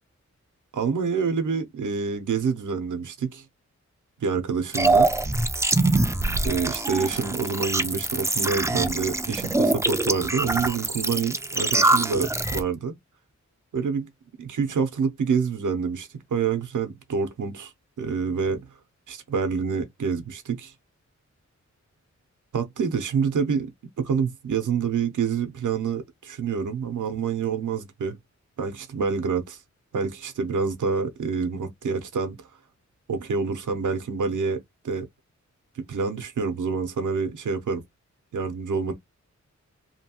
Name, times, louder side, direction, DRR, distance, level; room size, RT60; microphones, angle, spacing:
voice 1, 0.7-3.4 4.2-5.1 6.4-12.9 13.7-14.1 14.4-17.7 18.0-18.7 19.1-20.7 22.5-23.7 24.0-28.2 28.6-29.6 29.9-32.4 33.1-35.1 35.7-37.8 38.3-38.9, right 5 dB, 85° right, 0.6 m, -27 dB
sound 1, 4.7-12.6, right 2 dB, 10° right, 0.3 m, -24 dB
2.8 x 2.2 x 2.8 m
wide cardioid pair, 110°, 30 cm